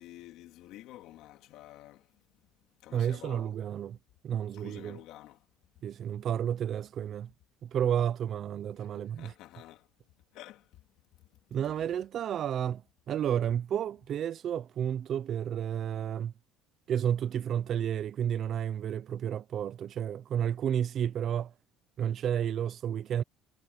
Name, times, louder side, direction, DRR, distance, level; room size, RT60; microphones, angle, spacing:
voice 1, 0.0-2.2 2.8-3.5 4.5-5.5 8.7-9.9 10.3-10.9 11.2-11.3 11.7-11.9, left 15 dB, 65° left, 3.2 m, -50 dB
voice 2, 2.9-4.0 4.2-5.0 5.8-7.3 7.6-9.3 11.5-12.8 13.1-16.3 16.9-21.5 22.0-23.2, right 9 dB, 40° right, 0.7 m, -31 dB
cardioid pair, 150°, 0 cm